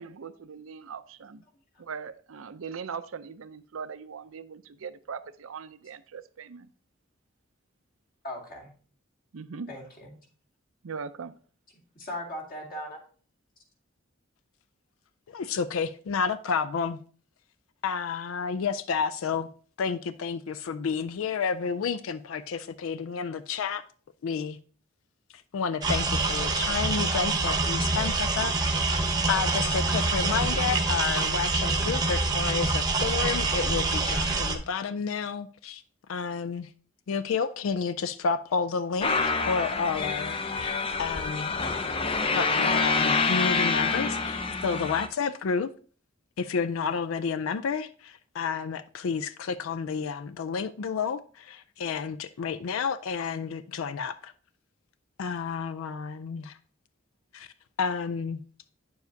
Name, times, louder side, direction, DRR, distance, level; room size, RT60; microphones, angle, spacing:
voice 1, 0.0-1.4 1.8-6.7 9.3-9.7 10.8-11.3, right 6 dB, 85° right, 0.5 m, -40 dB
voice 2, 8.2-8.7 9.7-10.2 12.0-13.0, left 1 dB, 45° left, 2.2 m, -38 dB
voice 3, 15.3-17.0 17.8-19.5 19.8-23.8 24.2-24.6 25.5-35.8 36.1-36.7 37.1-41.6 42.3-45.7 46.4-54.3 55.2-56.6 57.3-57.5 57.8-58.4, left 5 dB, 80° left, 0.4 m, -30 dB
sound 1, 25.8-34.5, right 3 dB, 20° right, 0.9 m, -26 dB
sound 2, 39.0-45.1, left 4 dB, 25° left, 0.5 m, -27 dB
9.2 x 7.0 x 2.7 m
head